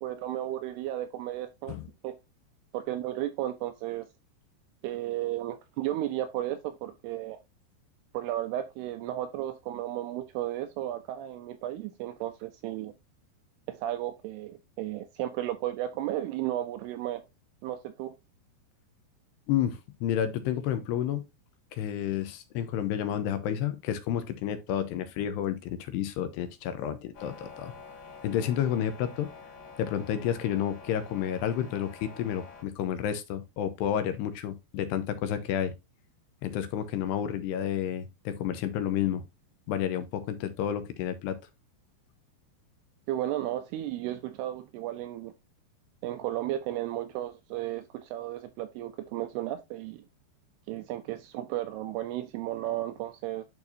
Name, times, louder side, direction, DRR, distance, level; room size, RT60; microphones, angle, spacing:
voice 1, 0.0-1.8 2.0-2.2 2.7-4.1 4.8-7.4 8.1-12.9 13.7-17.2 17.6-18.1 43.1-45.3 46.0-50.1 50.7-53.4, right 13 dB, 85° right, 2.3 m, -34 dB
voice 2, 19.5-21.3 21.7-27.7 28.2-29.3 29.8-35.7 36.4-39.2 39.7-41.4, left 10 dB, 80° left, 2.7 m, -30 dB
sound 1, 27.1-32.6, left 5 dB, 40° left, 3.0 m, -48 dB
10.5 x 4.6 x 2.7 m
omnidirectional pair, 5.1 m